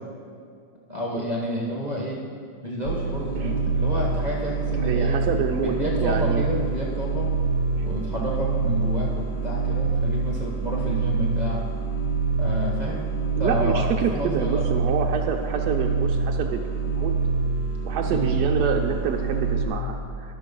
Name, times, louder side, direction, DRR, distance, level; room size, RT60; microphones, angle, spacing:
voice 1, 0.9-2.2 2.6-5.2 5.6-7.3 7.8-11.6 12.4-13.1 13.4-14.6 18.1-18.3, equal, 30° right, -4 dB, 0.9 m, -30 dB
sound 1, 2.9-19.7, right 4 dB, 75° left, 1.9 m, -25 dB
voice 2, 3.3-3.7 4.8-6.4 7.8-7.9 13.3-17.1 17.8-20.3, right 6 dB, 75° right, 3 dB, 0.9 m, -28 dB
11.5 x 6.5 x 5.3 m, 2.2 s
omnidirectional pair, 2.3 m